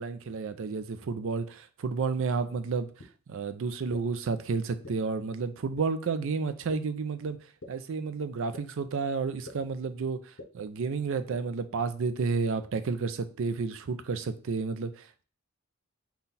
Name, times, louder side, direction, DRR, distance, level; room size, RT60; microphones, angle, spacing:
voice 1, 0.0-2.9 3.3-7.4 7.7-15.2, right 4 dB, 60° right, 0.4 m, -31 dB
sound 1, 3.0-3.1 3.9-4.0 4.8-4.9 5.8-5.9 6.7-6.8 7.6-7.7 8.5-8.6 9.5-9.6 10.4-10.5 11.3-11.4, left 2 dB, 60° left, 0.8 m, -43 dB
5.7 x 2.3 x 4.0 m
head